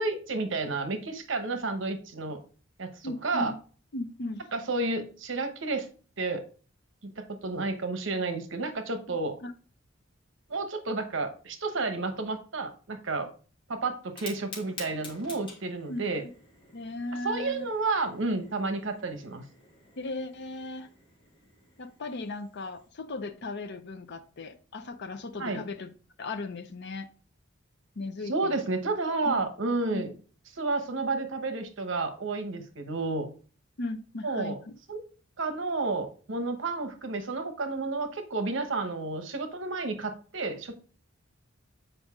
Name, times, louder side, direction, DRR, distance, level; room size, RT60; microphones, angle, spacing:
voice 1, 0.0-2.4 2.8-3.5 4.5-5.9 6.2-6.4 7.0-9.4 10.5-13.3 13.7-16.2 17.2-19.4 25.4-25.6 28.3-30.1 30.5-33.3 34.2-34.6 34.9-35.0 35.4-40.8, right 3 dB, 70° right, 7 dB, 1.0 m, -31 dB
voice 2, 3.0-3.6 3.9-4.4 9.4-9.5 15.9-16.0 16.7-17.7 20.0-20.9 21.8-25.9 26.2-27.1 28.0-28.6 29.2-29.4 29.9-30.0 33.8-34.7, left 2 dB, 60° left, 7 dB, 0.6 m, -37 dB
Fire, 14.0-22.9, left 3 dB, 25° left, 2.3 m, -49 dB
8.0 x 5.0 x 3.6 m, 0.39 s
head